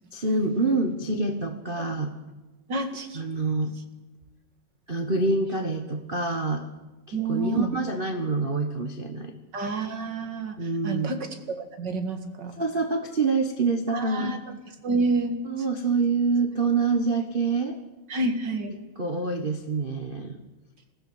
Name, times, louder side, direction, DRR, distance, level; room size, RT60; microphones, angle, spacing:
voice 1, 0.1-2.1 3.1-3.8 4.9-6.7 7.1-9.4 10.6-11.1 12.6-14.3 15.4-17.8 19.0-20.4, right 3 dB, 75° right, 4 dB, 0.5 m, -26 dB
voice 2, 2.7-3.2 7.1-7.7 9.5-12.6 13.9-14.4 14.8-15.4 18.1-18.7, right 3 dB, 40° right, 6 dB, 2.2 m, -29 dB
20.5 x 16.0 x 8.0 m, 1.2 s
omnidirectional pair, 3.4 m